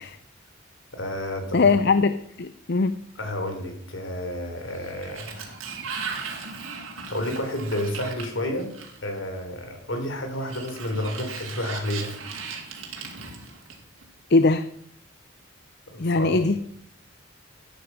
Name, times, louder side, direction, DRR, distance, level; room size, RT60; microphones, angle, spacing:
voice 1, 0.9-1.8 3.2-5.6 6.5-8.7 9.0-12.2 15.9-16.4, left 1 dB, 65° left, 5 dB, 3.6 m, -31 dB
voice 2, 1.5-2.9 14.3-14.6 16.0-16.6, left 3 dB, 50° left, 12 dB, 0.6 m, -20 dB
Sliding door, 4.6-9.2 10.3-14.0, right 5 dB, 80° right, 3.3 m, -37 dB
14.5 x 10.0 x 6.0 m, 0.73 s
head